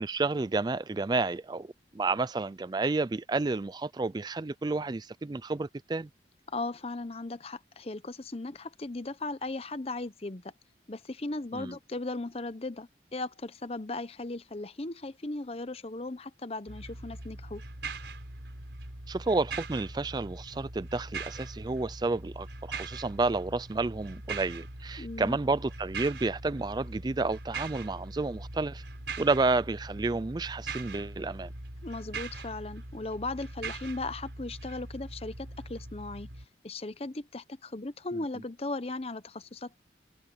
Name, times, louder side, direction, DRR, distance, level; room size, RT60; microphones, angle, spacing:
voice 1, 0.0-6.1 11.5-11.7 19.1-28.8 29.2-31.5, right 3 dB, 25° right, 0.4 m, -30 dB
voice 2, 6.5-10.5 10.9-17.6 25.0-25.4 31.8-36.3 36.6-39.8, left 2 dB, 35° left, 0.8 m, -37 dB
sound 1, 16.7-36.5, right 3 dB, 85° right, 4.6 m, -41 dB
head